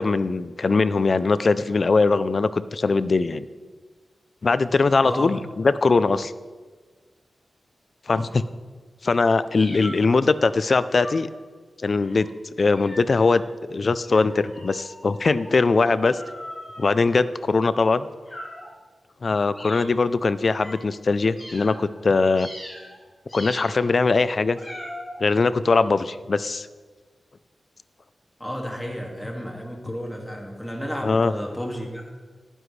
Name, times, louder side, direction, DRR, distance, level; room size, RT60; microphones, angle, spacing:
voice 1, 0.0-3.4 4.4-6.3 8.1-8.4 9.0-11.3 11.8-12.3 12.6-13.4 13.7-16.2 16.8-18.1 19.2-22.5 23.3-24.6 25.2-26.7 31.0-31.3, left 3 dB, 45° left, 14 dB, 0.4 m, -21 dB
voice 2, 5.0-5.4 8.1-8.4 10.1-10.2 28.4-32.1, equal, 5° left, 0 dB, 2.1 m, -32 dB
sound 1, 9.5-10.3 10.9-11.4 12.0-12.3 12.7-13.4 14.0-17.5 18.2-18.7 19.5-20.0 20.6-20.8 21.4-21.9 22.4-23.0 23.3-23.9 24.5-25.2, left 1 dB, 30° left, 4.6 m, -41 dB
19.5 x 9.9 x 3.3 m, 1.4 s
wide cardioid pair, 160°, 0 cm